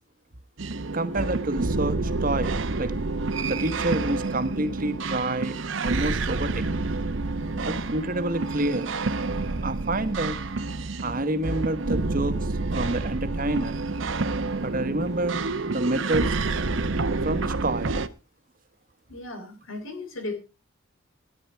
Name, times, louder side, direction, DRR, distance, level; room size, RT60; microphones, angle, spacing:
sound 1, 0.6-18.1, right 3 dB, 65° right, 0.8 m, -28 dB
voice 1, 0.9-2.9 3.4-6.6 7.7-9.0 9.6-10.4 11.0-13.8 14.6-16.4 17.2-17.9, right 2 dB, 40° right, 12 dB, 1.1 m, -28 dB
voice 2, 7.4-7.9 19.1-20.4, left 2 dB, 75° left, 7 dB, 3.4 m, -36 dB
13.5 x 10.5 x 4.5 m, 0.30 s
head